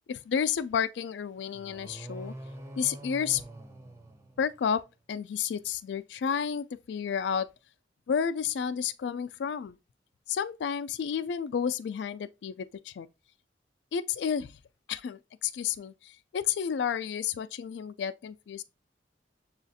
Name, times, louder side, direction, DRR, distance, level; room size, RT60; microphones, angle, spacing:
voice 1, 0.1-2.3 2.8-3.4 4.4-4.8 5.1-7.5 8.1-9.8 10.3-13.1 13.9-14.5 14.9-18.6, left 7 dB, 85° left, 0.3 m, -31 dB
sound 1, 1.5-4.9, right 1 dB, 15° right, 0.4 m, -45 dB
6.9 x 2.4 x 2.7 m
head